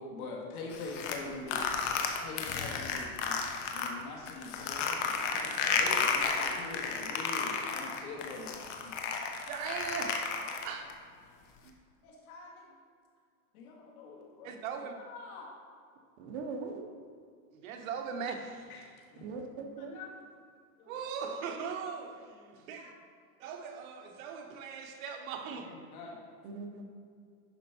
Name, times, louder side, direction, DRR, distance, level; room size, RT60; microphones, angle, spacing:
voice 1, 0.0-1.7 2.2-3.4 3.7-9.3 10.4-10.9 11.2-11.3 12.0-12.8 13.5-15.5 18.7-18.9 19.1-19.2 19.8-20.1 20.8-20.9 22.8-22.9 25.5-26.2, left 3 dB, 70° left, -2 dB, 2.4 m, -45 dB
sound 1, 0.7-3.9 4.3-10.9, left 6 dB, 55° left, 1.2 m, -32 dB
voice 2, 9.5-10.8 11.6-11.7 14.4-14.9 17.5-18.6 20.9-22.9 23.4-25.7, right 6 dB, 65° right, 5 dB, 1.2 m, -39 dB
voice 3, 16.2-16.9 19.2-20.0 26.4-26.8, right 4 dB, 45° right, 3 dB, 1.2 m, -40 dB
11.0 x 5.4 x 4.5 m, 2.1 s
supercardioid pair, 155°, 45 cm